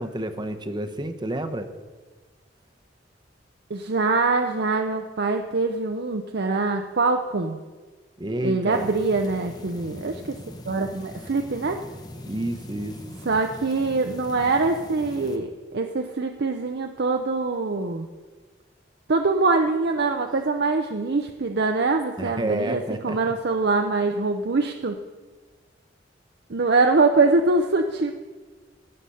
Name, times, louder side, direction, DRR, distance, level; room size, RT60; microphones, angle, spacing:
voice 1, 0.0-1.7 8.2-8.9 12.3-13.0 22.2-23.2, right 1 dB, 25° right, 9 dB, 0.8 m, -29 dB
voice 2, 3.7-7.6 8.4-10.4 10.7-11.8 13.3-18.1 19.1-25.0 26.5-28.1, right 3 dB, 65° right, 4 dB, 0.6 m, -23 dB
sound 1, 8.7-15.4, left 1 dB, 25° left, 1.0 m, -41 dB
16.5 x 6.7 x 5.6 m, 1.4 s
head